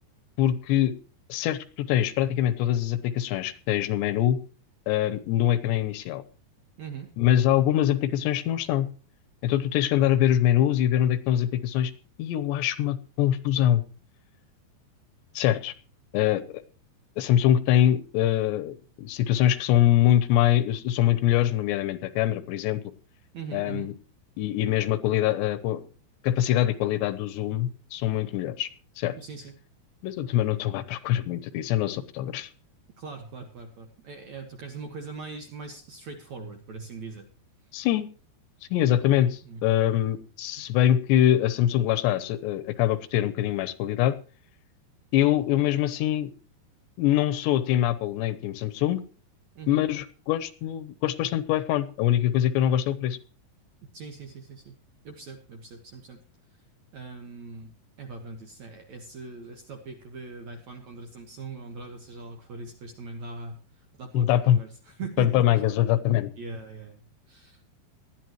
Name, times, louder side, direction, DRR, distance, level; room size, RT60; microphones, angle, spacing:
voice 1, 0.4-0.9 1.3-4.4 4.9-6.2 7.2-8.9 9.4-11.9 12.2-13.8 15.4-15.7 16.1-16.6 17.2-22.8 23.5-23.9 24.4-25.8 26.2-28.7 29.0-29.2 30.0-32.5 37.7-38.1 38.7-44.1 45.1-46.3 47.0-49.0 49.7-53.2 64.1-64.6 65.2-66.3, left 12 dB, 80° left, 13 dB, 3.0 m, -24 dB
voice 2, 6.8-7.1 23.3-23.9 29.2-29.5 33.0-37.3 39.4-39.6 49.6-49.8 53.9-54.7 55.0-56.2 56.9-57.7 58.0-63.6 64.0-65.5 66.4-67.6, right 4 dB, 60° right, 4 dB, 2.0 m, -41 dB
19.0 x 12.0 x 3.0 m, 0.37 s
omnidirectional pair, 5.1 m